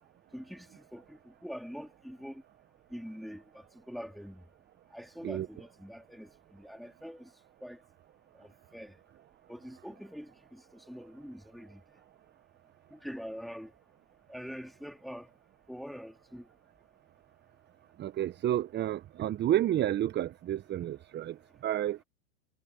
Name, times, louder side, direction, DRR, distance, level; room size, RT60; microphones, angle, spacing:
voice 1, 0.3-2.4 2.9-4.4 4.9-7.3 7.6-7.8 8.4-9.0 9.5-11.8 12.9-13.7 14.3-15.3 15.7-16.5, equal, ahead, 3.6 m, -44 dB
voice 2, 18.0-21.4 21.6-22.0, right 12 dB, 25° right, 1.1 m, -30 dB
hypercardioid pair, 100°, 44 cm